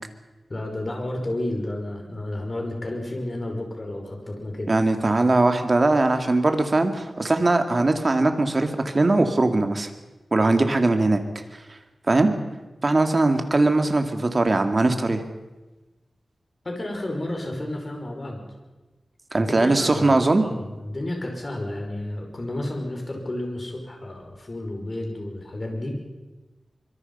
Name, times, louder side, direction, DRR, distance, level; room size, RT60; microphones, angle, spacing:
voice 1, 0.5-4.7 10.4-10.6 16.6-18.4 19.4-20.5 20.8-26.0, left 1 dB, 35° left, 2 dB, 5.4 m, -31 dB
voice 2, 4.7-9.9 10.3-11.2 12.1-12.3 12.8-15.2 19.3-20.5, right 2 dB, 35° right, 6 dB, 2.2 m, -20 dB
25.0 x 23.5 x 5.6 m, 1.1 s
wide cardioid pair, 125°, 0 cm